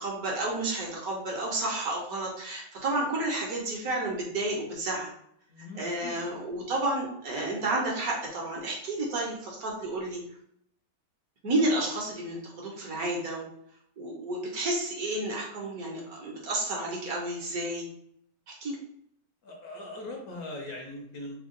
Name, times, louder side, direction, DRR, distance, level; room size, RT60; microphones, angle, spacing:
voice 1, 0.0-5.1 5.6-10.2 11.4-13.5 14.0-17.9 18.5-18.8, right 2 dB, 60° right, -2 dB, 1.2 m, -31 dB
voice 2, 5.5-6.4 19.4-21.3, left 1 dB, 65° left, 1 dB, 1.0 m, -41 dB
3.5 x 2.2 x 3.7 m, 0.69 s
omnidirectional pair, 1.9 m